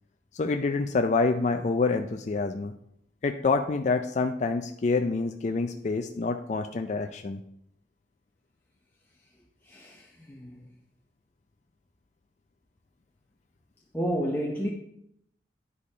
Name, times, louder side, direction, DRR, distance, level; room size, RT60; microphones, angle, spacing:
voice 1, 0.3-2.7 3.2-7.4, left 3 dB, 40° left, 0.4 m, -27 dB
voice 2, 9.7-10.6 13.9-14.7, equal, 10° left, 0.7 m, -31 dB
9.9 x 4.6 x 4.9 m
head